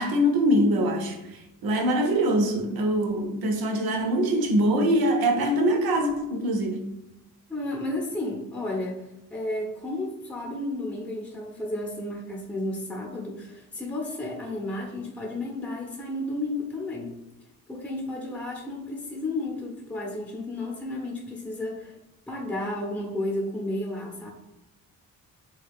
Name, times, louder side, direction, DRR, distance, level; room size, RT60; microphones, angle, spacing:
voice 1, 0.0-6.8, equal, 85° right, 0.7 m, -23 dB
voice 2, 7.5-9.0 9.3-17.1 17.7-22.0 22.3-24.3, left 1 dB, 5° left, 0.7 m, -32 dB
3.3 x 2.3 x 3.4 m
cardioid pair, 95°, 35 cm